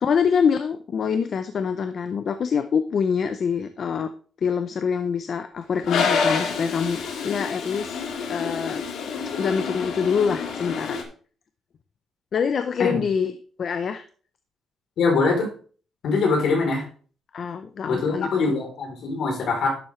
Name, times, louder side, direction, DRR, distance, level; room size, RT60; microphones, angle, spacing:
voice 1, 0.0-4.1 4.4-8.8 9.4-11.0 12.3-14.0 17.3-18.5, left 6 dB, 40° left, 10 dB, 0.5 m, -25 dB
Toilet flush, 5.8-11.0, left 5 dB, 75° left, 1.8 m, -28 dB
voice 2, 15.0-15.5 16.0-16.8 17.9-19.7, left 4 dB, 60° left, 1 dB, 3.5 m, -23 dB
11.5 x 7.6 x 3.2 m, 0.42 s
cardioid pair, 170°, 0 cm